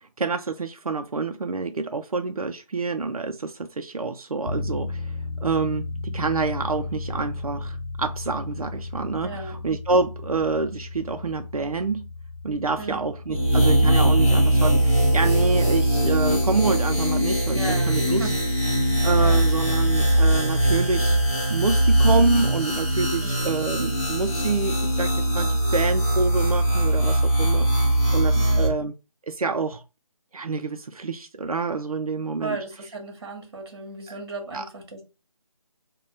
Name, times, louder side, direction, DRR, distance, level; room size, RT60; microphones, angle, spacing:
voice 1, 0.2-5.1 5.4-12.1 12.4-18.3 19.0-21.2 21.5-27.7 28.1-28.9 29.3-29.8 30.3-32.6 34.5-34.7, right 4 dB, 90° right, 0.5 m, -27 dB
sound 1, 4.4-20.8, left 3 dB, 50° left, 0.6 m, -36 dB
voice 2, 9.2-9.6 12.8-13.0 17.5-18.3 19.2-19.4 23.2-23.5 28.3-28.7 32.4-35.0, right 2 dB, 45° right, 1.4 m, -35 dB
sound 2, 13.3-28.7, right 1 dB, ahead, 0.6 m, -21 dB
3.1 x 2.2 x 3.9 m
figure-of-eight pair, 160°, 18 cm